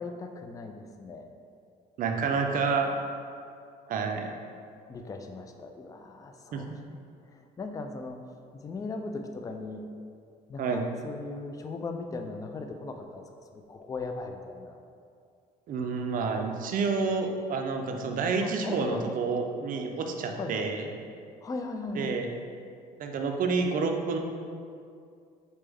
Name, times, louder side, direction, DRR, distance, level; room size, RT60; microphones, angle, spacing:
voice 1, 0.0-1.4 2.1-2.8 4.9-6.7 7.3-8.2 8.5-9.9 10.5-13.2 13.5-14.8 18.4-19.1 20.3-20.7 21.4-22.1, left 3 dB, 20° left, 5 dB, 0.3 m, -38 dB
voice 2, 2.0-2.9 3.9-4.3 6.5-6.8 10.6-10.9 15.7-20.9 21.9-22.3 23.0-24.2, right 4 dB, 55° right, 3 dB, 0.5 m, -29 dB
4.1 x 3.4 x 3.4 m, 2.3 s
cardioid pair, 110°, 17 cm